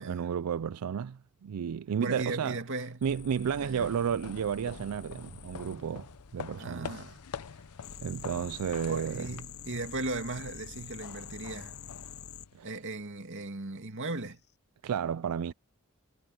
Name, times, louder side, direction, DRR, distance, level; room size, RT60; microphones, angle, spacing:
voice 1, 0.0-2.6 3.0-6.1 6.3-6.9 8.0-9.3 12.5-12.7 14.8-15.5, right 7 dB, 90° right, 0.4 m, -32 dB
voice 2, 2.0-3.0 3.6-3.9 6.6-7.2 8.9-11.7 12.6-14.4, right 2 dB, 60° right, 2.4 m, -37 dB
sound 1, 3.0-5.8 7.8-12.5 14.1-14.5, left 6 dB, 70° left, 1.9 m, -47 dB
sound 2, 3.2-12.8, left 6 dB, 90° left, 0.7 m, -47 dB
head